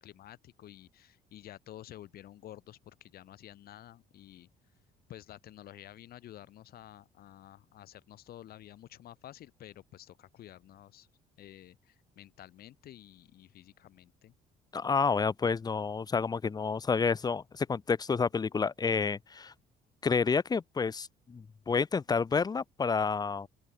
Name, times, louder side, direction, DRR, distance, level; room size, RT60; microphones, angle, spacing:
voice 1, 0.0-4.5 5.1-11.1 11.4-14.3, left 12 dB, 65° left, 2.9 m, -51 dB
voice 2, 14.7-19.5 20.0-23.5, left 5 dB, 25° left, 0.8 m, -29 dB
open air
cardioid pair, 110°, 17 cm